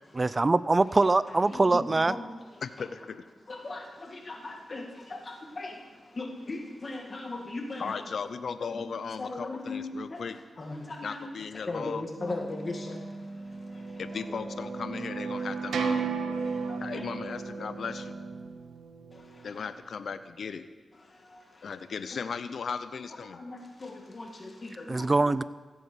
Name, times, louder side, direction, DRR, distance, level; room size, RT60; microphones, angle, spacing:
voice 1, 0.2-2.1 24.9-25.4, right 3 dB, 35° right, 17 dB, 0.5 m, -23 dB
voice 2, 1.0-2.9 3.5-8.0 8.6-8.9 9.2-14.6 16.3-17.1 19.1-19.7 20.9-22.2 23.3-25.1, left 2 dB, 45° left, 2 dB, 2.1 m, -40 dB
voice 3, 2.6-3.2 7.8-10.4 11.0-12.0 14.0-16.1 16.8-18.1 19.4-20.7 21.6-23.4, left 5 dB, 75° left, 13 dB, 0.6 m, -36 dB
Wind instrument woodwind instrument, 12.1-18.6, right 2 dB, 15° right, 2.0 m, -42 dB
sound 1, 13.2-19.6, right 5 dB, 90° right, 0.8 m, -35 dB
15.5 x 8.8 x 6.9 m, 1.3 s
cardioid pair, 55°, 0 cm